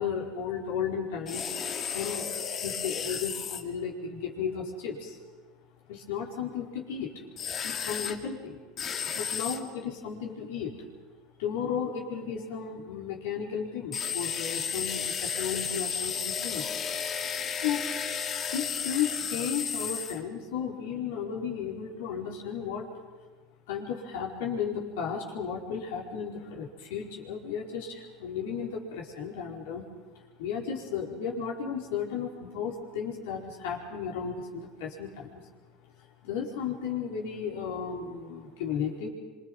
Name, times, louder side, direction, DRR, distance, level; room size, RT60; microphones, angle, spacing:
voice 1, 0.0-1.4 1.9-2.3 2.6-5.2 5.9-7.1 7.6-8.6 9.2-10.7 11.4-16.6 17.6-17.9 18.5-22.9 23.7-29.9 30.4-35.4 36.2-39.1, left 7 dB, 80° left, -1 dB, 4.9 m, -34 dB
sound 1, 1.3-3.6 7.4-8.2 8.8-9.6 13.9-20.2, left 7 dB, 40° left, 2.2 m, -33 dB
26.0 x 25.0 x 5.6 m, 1.3 s
supercardioid pair, 100°, 0 cm